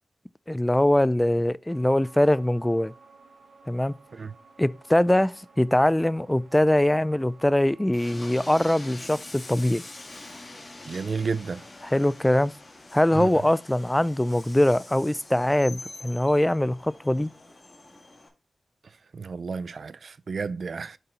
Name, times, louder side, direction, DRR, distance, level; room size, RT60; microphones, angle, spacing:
voice 1, 0.5-2.9 3.7-4.0 4.6-9.8 11.8-12.5 12.9-17.3, left 1 dB, 10° left, 0.3 m, -22 dB
sound 1, 1.7-8.7, right 4 dB, 85° right, 2.0 m, -54 dB
Train, 7.9-18.3, left 2 dB, 40° left, 1.5 m, -45 dB
voice 2, 10.9-11.6 13.1-13.3 19.1-21.0, right 5 dB, 65° right, 0.3 m, -31 dB
6.8 x 4.2 x 3.7 m
wide cardioid pair, 75°, 0 cm